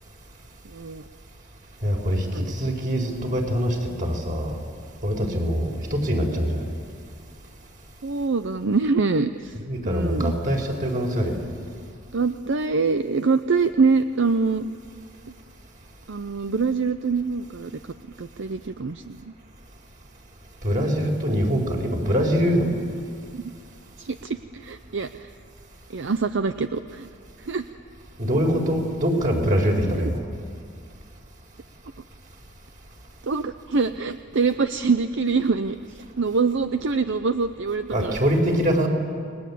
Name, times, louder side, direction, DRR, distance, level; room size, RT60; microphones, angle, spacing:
voice 1, 0.6-1.0 2.3-2.7 5.2-5.5 8.0-9.6 9.8-10.3 12.1-14.7 16.1-17.7 18.2-19.3 23.3-23.4 24.0-25.3 25.9-27.1 27.4-27.7 30.0-30.1 33.2-38.1, right 4 dB, 65° right, 10 dB, 0.7 m, -25 dB
voice 2, 1.8-4.6 5.0-6.7 9.7-11.4 20.6-22.7 28.2-30.2 37.9-38.9, equal, 40° right, 1 dB, 4.7 m, -23 dB
29.5 x 21.0 x 8.6 m, 2.3 s
head